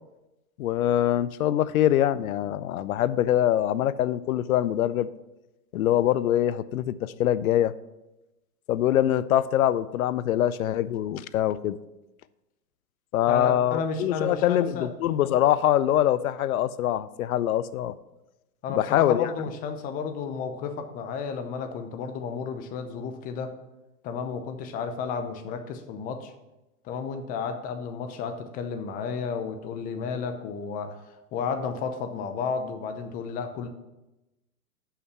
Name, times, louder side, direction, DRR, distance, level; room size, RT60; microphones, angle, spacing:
voice 1, 0.6-5.1 5.7-7.7 8.7-11.8 13.1-17.9 18.7-19.3, left 12 dB, 65° left, 17 dB, 0.5 m, -24 dB
voice 2, 13.3-14.9 18.6-23.5 24.0-26.3 26.8-30.9 31.3-33.7, left 5 dB, 20° left, 7 dB, 0.6 m, -32 dB
6.5 x 5.7 x 5.6 m, 0.98 s
hypercardioid pair, 120°, 46 cm